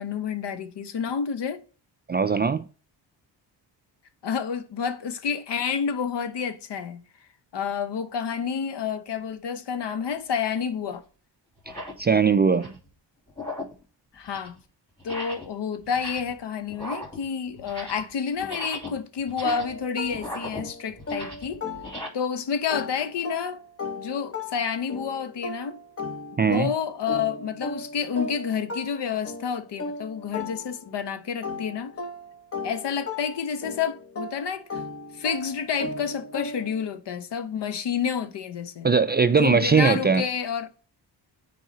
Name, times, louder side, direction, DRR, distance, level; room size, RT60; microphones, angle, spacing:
voice 1, 0.0-1.6 4.2-7.0 7.5-11.0 14.1-14.6 15.0-21.6 22.1-23.6 24.0-25.8 26.4-31.9 32.6-34.8 35.1-38.9 39.4-40.7, left 7 dB, 65° left, 0.9 m, -29 dB
voice 2, 2.1-2.6 12.0-12.7 26.4-26.7 38.8-40.2, right 5 dB, 25° right, 0.3 m, -20 dB
sound 1, 10.0-10.2 10.9-11.0 11.6-12.0 12.4-12.9 13.3-13.8 14.1-14.6 15.0-15.5 15.8-16.4 16.7-18.1 18.4-22.1, left 1 dB, 10° left, 2.6 m, -38 dB
sound 2, 19.4-22.3 22.7-31.0 31.4-36.9, left 2 dB, 30° left, 1.1 m, -36 dB
9.1 x 4.7 x 2.8 m
cardioid pair, 75°, 45 cm